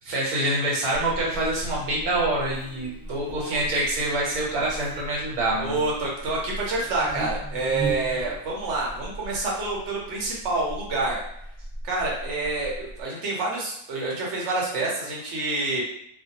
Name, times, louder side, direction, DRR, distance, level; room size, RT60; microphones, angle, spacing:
voice 1, 0.0-5.8, right 1 dB, 85° right, -4 dB, 1.3 m, -26 dB
Buzz, 0.9-13.0, right 1 dB, 5° right, 1.1 m, -38 dB
voice 2, 3.2-3.6 5.5-11.2 11.8-15.8, right 2 dB, 60° right, -4 dB, 1.0 m, -28 dB
2.5 x 2.2 x 2.8 m, 0.75 s
omnidirectional pair, 1.5 m